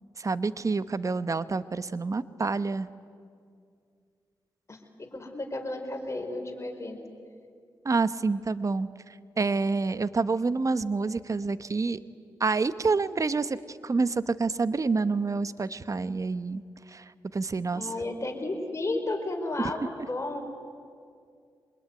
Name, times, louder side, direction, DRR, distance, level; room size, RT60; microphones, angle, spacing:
voice 1, 0.2-2.9 7.8-12.0 12.4-16.6 16.9-17.0 17.3-17.9 19.6-19.7, right 4 dB, 40° right, 14 dB, 1.0 m, -28 dB
voice 2, 4.7-7.0 17.7-20.4, left 2 dB, 35° left, 3 dB, 4.7 m, -33 dB
25.5 x 21.0 x 9.6 m, 2.2 s
supercardioid pair, 50°, 8 cm